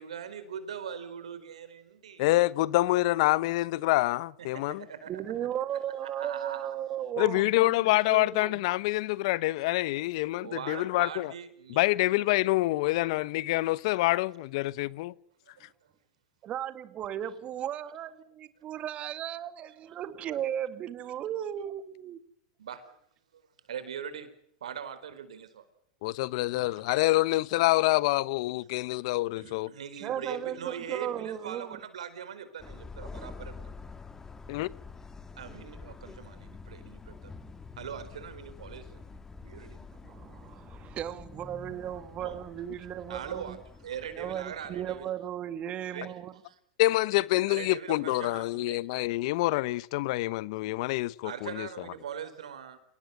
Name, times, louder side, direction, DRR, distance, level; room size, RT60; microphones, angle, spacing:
voice 1, 0.0-2.3 4.4-5.1 6.2-6.7 10.4-12.1 22.6-23.0 23.3-23.4 23.7-24.3 24.6-25.6 29.4-33.7 35.3-37.3 37.8-39.9 42.2-42.4 43.1-43.6 43.8-45.1 45.8-46.2 46.4-46.6 47.5-48.8 51.2-52.8, right 8 dB, 85° right, 4.3 m, -41 dB
voice 2, 2.2-4.8 7.2-11.3 11.7-15.1 26.0-29.7 34.5-34.7 46.8-51.7, left 19 dB, 60° left, 0.9 m, -26 dB
voice 3, 5.1-8.6 16.4-22.2 26.6-26.8 30.0-31.8 39.9-43.6 44.1-46.3, right 10 dB, 35° right, 1.9 m, -36 dB
sound 1, 32.6-45.1, left 4 dB, 15° left, 2.8 m, -47 dB
27.5 x 19.0 x 8.1 m
hypercardioid pair, 105°, 3 cm